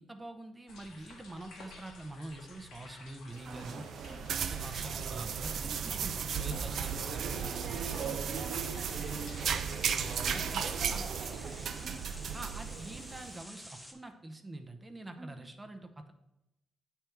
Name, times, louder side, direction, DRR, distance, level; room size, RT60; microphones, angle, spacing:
voice 1, 0.0-3.8 4.3-7.8 9.9-11.0 12.3-16.1, right 2 dB, 15° right, 6 dB, 0.6 m, -45 dB
sound 1, 0.7-10.5, left 3 dB, 80° left, 1.4 m, -53 dB
sound 2, 3.3-13.3, right 7 dB, 60° right, 0.4 m, -35 dB
voice 2, 3.4-4.3 6.5-6.8 7.4-12.1 15.2-15.4, right 3 dB, 40° right, 3 dB, 1.2 m, -50 dB
sound 3, 7.1-13.9, equal, 5° left, 0.9 m, -50 dB
7.7 x 3.4 x 4.5 m, 0.90 s
cardioid pair, 90°, 0 cm